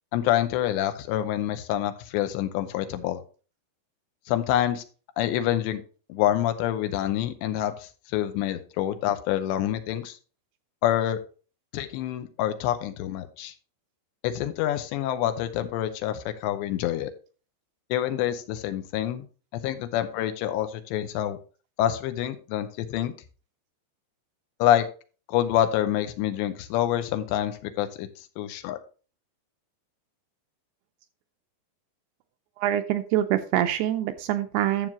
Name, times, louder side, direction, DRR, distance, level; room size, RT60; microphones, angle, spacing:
voice 1, 0.1-3.2 4.3-4.8 5.2-5.8 6.1-10.2 10.8-11.2 11.7-13.5 14.2-17.1 17.9-19.3 19.6-21.4 21.8-23.1 24.6-24.9 25.3-28.1 28.4-28.8, left 12 dB, 85° left, 9 dB, 3.0 m, -27 dB
voice 2, 32.6-34.9, right 12 dB, 85° right, 8 dB, 2.5 m, -25 dB
12.0 x 7.4 x 3.0 m, 0.37 s
omnidirectional pair, 5.1 m